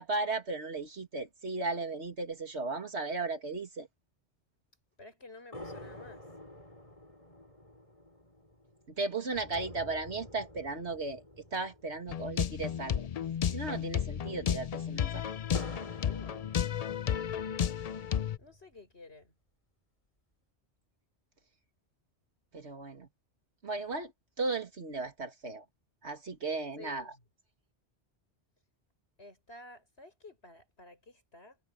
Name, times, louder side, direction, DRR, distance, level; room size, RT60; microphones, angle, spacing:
voice 1, 0.0-3.9 8.9-13.1 13.5-15.2 22.5-23.1 23.6-24.1 24.4-25.6 26.0-27.1, right 3 dB, 80° right, 2.7 m, -36 dB
voice 2, 5.0-6.3 16.0-16.5 18.4-19.4 26.8-27.2 29.2-31.6, left 2 dB, 70° left, 6.3 m, -52 dB
sound 1, 5.5-13.1 13.4-13.5 13.9-17.3 17.8-18.8, left 1 dB, 30° left, 7.6 m, -49 dB
sound 2, 12.1-18.4, left 9 dB, 50° left, 0.5 m, -33 dB
omnidirectional pair, 1.1 m